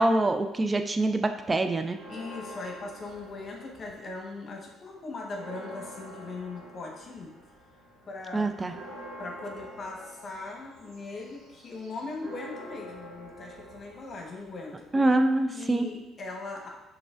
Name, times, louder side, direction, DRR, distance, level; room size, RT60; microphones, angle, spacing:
voice 1, 0.0-2.0 8.3-8.7 14.9-15.9, right 2 dB, 25° right, 8 dB, 0.4 m, -25 dB
Church bell, 1.9-4.3 4.7-4.8 5.1-15.1, equal, 70° right, 1.2 m, -47 dB
voice 2, 2.1-7.3 8.1-8.5 9.2-14.9 15.5-16.7, left 3 dB, 45° left, 0 dB, 1.1 m, -39 dB
6.1 x 3.3 x 2.4 m, 0.99 s
hypercardioid pair, 55°, 0 cm